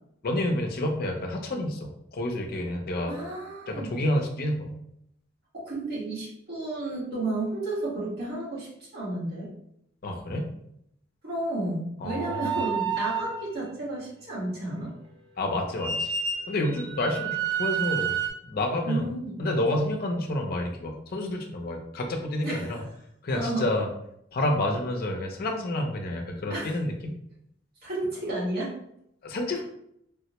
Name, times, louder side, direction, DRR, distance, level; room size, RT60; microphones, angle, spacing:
voice 1, 0.2-3.2 3.7-4.7 10.0-10.5 12.0-12.5 15.4-16.2 16.5-19.1 19.4-22.9 23.2-23.9 24.3-27.1 29.2-29.6, left 1 dB, 50° left, 3 dB, 0.5 m, -29 dB
voice 2, 3.1-3.9 5.5-9.5 11.2-14.9 18.8-19.4 22.4-22.7 23.3-23.7 26.5-26.7 27.8-28.7, right 2 dB, 55° right, -6 dB, 1.4 m, -32 dB
sound 1, 12.1-13.4 15.8-18.3, right 6 dB, 25° right, 0.4 m, -30 dB
3.4 x 2.1 x 2.9 m, 0.74 s
head